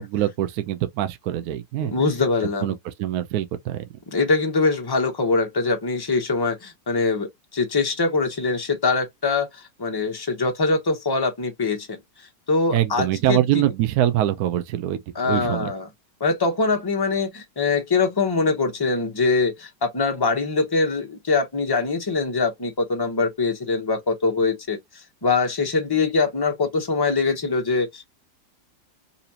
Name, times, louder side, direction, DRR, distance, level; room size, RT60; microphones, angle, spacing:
voice 1, 0.0-1.9 2.6-3.8 12.7-15.7, right 12 dB, 70° right, 1.0 m, -24 dB
voice 2, 1.8-2.8 4.1-12.0 12.5-13.4 15.1-15.9 16.2-24.8 25.2-28.1, left 4 dB, 30° left, 0.4 m, -23 dB
4.1 x 2.7 x 2.7 m
omnidirectional pair, 1.9 m